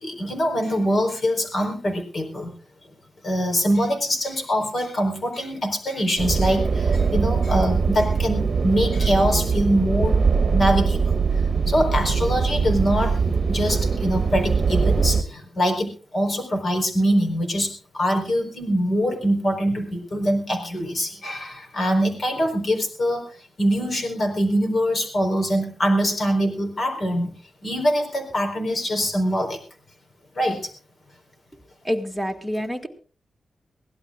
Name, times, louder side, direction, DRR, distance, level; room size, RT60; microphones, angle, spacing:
voice 1, 0.0-2.5 3.2-10.2 10.5-11.1 11.7-23.3 23.6-27.3 27.6-29.6 30.3-30.7, equal, 45° left, 4 dB, 4.3 m, -23 dB
sound 1, 6.2-15.2, right 5 dB, 50° right, 1.1 m, -22 dB
voice 2, 31.9-32.9, equal, ahead, 5 dB, 2.2 m, -27 dB
23.0 x 17.0 x 2.5 m, 0.37 s
wide cardioid pair, 115°, 0 cm